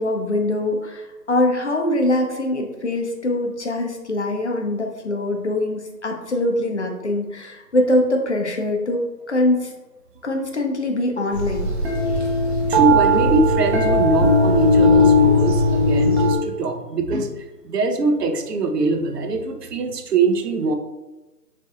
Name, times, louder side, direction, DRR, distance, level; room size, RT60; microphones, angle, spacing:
voice 1, 0.0-9.0 9.3-9.7 10.2-11.7, left 1 dB, 45° left, 2 dB, 0.5 m, -23 dB
sound 1, 11.3-16.4, left 1 dB, 40° right, 0.7 m, -17 dB
voice 2, 12.7-17.3 17.6-20.8, right 3 dB, 75° right, 6 dB, 0.7 m, -22 dB
4.2 x 3.3 x 2.4 m, 1.1 s
figure-of-eight pair, 160°, 48 cm